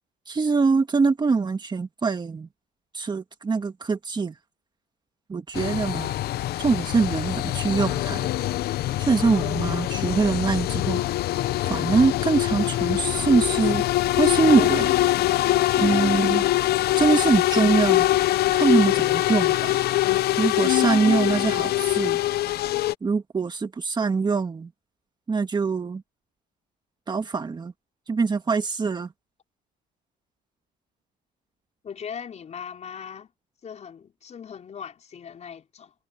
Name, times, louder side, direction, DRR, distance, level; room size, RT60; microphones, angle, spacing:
voice 1, 0.3-2.5 2.9-4.3 5.3-6.1 6.6-8.3 9.0-11.0 11.6-13.8 14.2-14.9 15.8-16.4 17.0-18.1 18.5-19.8 20.4-22.2 23.0-24.7 25.3-26.0 27.1-27.7 28.1-29.1, right 4 dB, 25° right, 1.8 m, -23 dB
sound 1, 5.5-22.9, left 15 dB, 70° left, 0.8 m, -23 dB
voice 2, 31.8-33.3 33.6-35.9, left 7 dB, 40° left, 5.3 m, -39 dB
cardioid pair, 110°, 17 cm